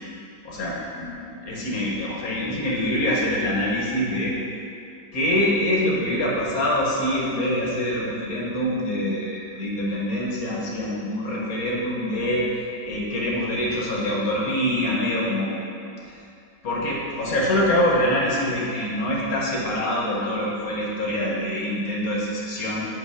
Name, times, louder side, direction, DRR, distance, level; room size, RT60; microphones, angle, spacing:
voice 1, 0.4-4.3 5.1-12.5 12.8-15.6 16.6-22.8, left 1 dB, 55° left, -4 dB, 1.6 m, -25 dB
8.1 x 4.7 x 4.9 m, 2.6 s
omnidirectional pair, 2.0 m